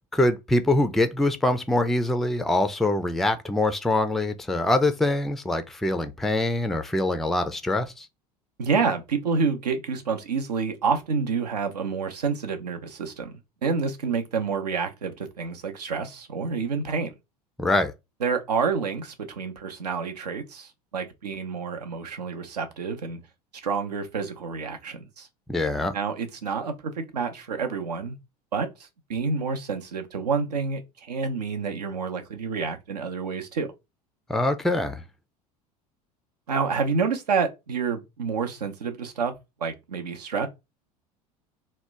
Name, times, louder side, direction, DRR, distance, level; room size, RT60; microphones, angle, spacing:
voice 1, 0.1-8.1 17.6-17.9 25.5-25.9 34.3-35.0, left 2 dB, ahead, 0.3 m, -24 dB
voice 2, 8.6-17.1 18.2-23.2 23.6-25.3 25.9-28.2 28.5-33.7 36.5-39.3 39.6-40.5, right 5 dB, 75° right, 0.7 m, -28 dB
2.8 x 2.1 x 3.4 m
figure-of-eight pair, 75°, 21 cm